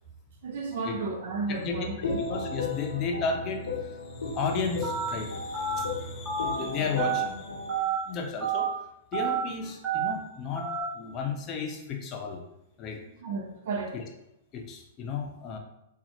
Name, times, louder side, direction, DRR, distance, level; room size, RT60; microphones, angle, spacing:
voice 1, 0.4-2.2 13.2-14.0, right 3 dB, 60° right, 2 dB, 0.7 m, -33 dB
voice 2, 1.5-8.7 9.1-12.4 12.8-13.0 13.9-14.0 14.5-15.6, left 5 dB, 35° left, 2 dB, 0.6 m, -34 dB
sound 1, 1.7-7.8, left 3 dB, 80° left, 0.7 m, -36 dB
Telephone, 4.8-5.1 5.5-5.8 6.3-6.5 7.0-7.2 7.7-8.0 8.4-8.7 9.1-9.4 9.8-10.1 10.6-10.8, right 7 dB, 20° right, 1.2 m, -29 dB
4.1 x 2.4 x 2.8 m, 0.83 s
hypercardioid pair, 110°, 0 cm